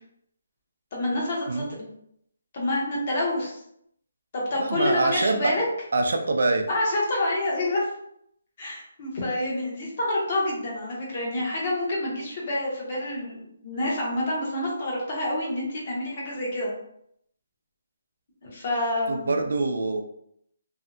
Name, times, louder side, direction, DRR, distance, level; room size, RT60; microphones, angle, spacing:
voice 1, 0.9-1.9 2.5-3.6 4.3-5.6 6.7-7.9 8.6-16.7 18.4-19.4, left 1 dB, 35° left, -3 dB, 0.9 m, -28 dB
voice 2, 4.6-5.6 5.9-6.7 19.1-20.0, right 2 dB, 65° right, 5 dB, 0.4 m, -25 dB
2.6 x 2.2 x 2.5 m, 0.72 s
hypercardioid pair, 170°, 0 cm